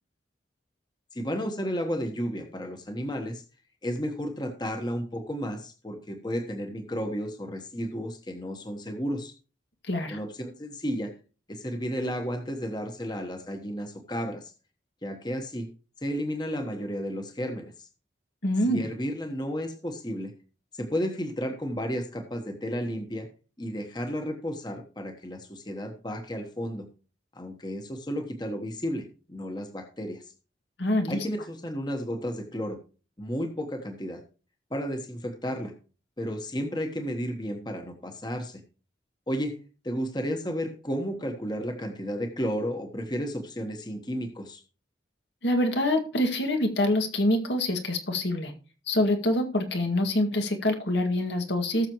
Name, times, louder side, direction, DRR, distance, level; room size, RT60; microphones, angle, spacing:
voice 1, 1.1-3.4 3.8-9.3 10.1-11.1 11.5-14.5 15.0-15.7 16.0-17.9 18.7-20.3 20.7-23.3 23.6-26.8 27.3-30.2 31.1-32.8 33.2-34.2 34.7-35.7 36.2-38.6 39.3-39.6 39.8-44.6, equal, 25° left, 4 dB, 1.3 m, -32 dB
voice 2, 9.9-10.2 18.4-18.8 30.8-31.3 45.4-48.5 48.9-51.9, left 1 dB, 80° left, 4 dB, 2.0 m, -25 dB
19.0 x 6.7 x 3.0 m, 0.36 s
head